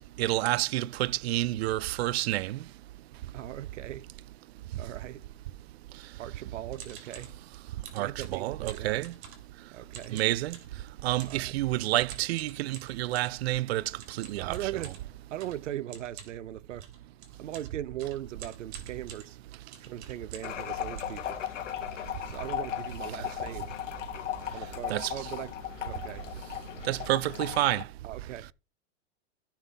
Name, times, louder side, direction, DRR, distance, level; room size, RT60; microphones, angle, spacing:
voice 1, 0.2-2.6 8.0-9.1 10.1-10.6 11.0-13.8 14.2-14.6 24.9-25.1 26.9-27.8, right 16 dB, 60° right, 0.5 m, -29 dB
voice 2, 3.3-4.1 4.8-5.3 6.2-7.3 7.9-9.0 9.7-10.2 11.2-11.6 14.4-14.9 15.3-16.9 17.4-19.4 19.8-21.4 22.3-23.7 24.5-25.5 25.8-26.3 28.0-28.5, right 12 dB, 85° right, 0.8 m, -39 dB
sound 1, 6.7-7.4 7.8-9.6 9.9-10.8 11.2-11.5 12.1-13.4 14.0-20.6 21.0-21.8 22.3-22.4 22.6-22.9 23.1-23.3 23.9-24.0 24.3-24.5, right 7 dB, 45° right, 3.3 m, -48 dB
sound 2, 20.4-27.8, left 10 dB, 85° left, 1.6 m, -37 dB
14.0 x 5.7 x 3.4 m
supercardioid pair, 160°, 36 cm